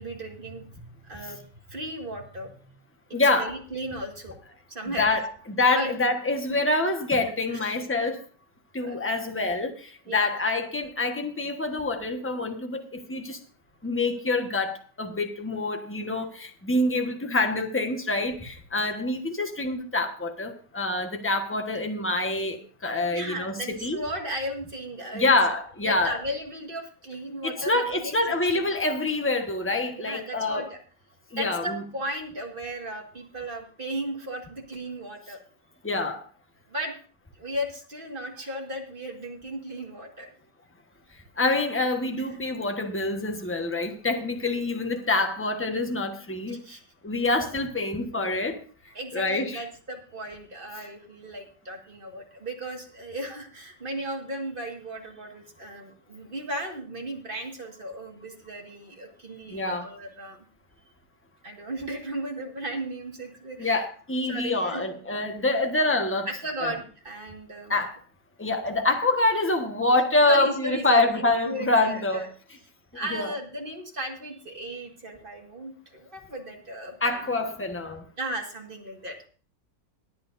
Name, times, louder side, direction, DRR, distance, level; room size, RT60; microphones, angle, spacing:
voice 1, 0.0-2.5 3.4-4.4 4.7-5.1 5.7-6.0 6.5-6.7 7.5-7.9 8.8-9.0 10.1-10.3 23.0-25.3 25.8-28.1 28.5-28.7 29.9-30.8 31.4-35.4 36.7-36.9 37.4-40.3 42.2-42.3 46.5-46.8 48.9-60.4 61.4-63.8 64.3-64.9 66.3-67.7 70.3-72.3 72.9-77.3 78.2-79.2, right 1 dB, 30° right, 2 dB, 1.9 m, -36 dB
voice 2, 3.1-3.6 5.0-5.3 5.6-8.2 8.7-13.4 13.8-23.5 23.8-24.0 25.1-26.2 27.4-30.7 31.3-31.8 35.8-36.2 41.4-46.6 47.0-48.6 49.1-49.6 59.5-59.8 63.6-66.3 66.6-66.7 67.7-68.0 68.4-72.3 73.1-73.3 77.0-78.0, left 2 dB, 10° left, 5 dB, 1.0 m, -26 dB
21.5 x 8.7 x 2.6 m, 0.41 s
omnidirectional pair, 1.9 m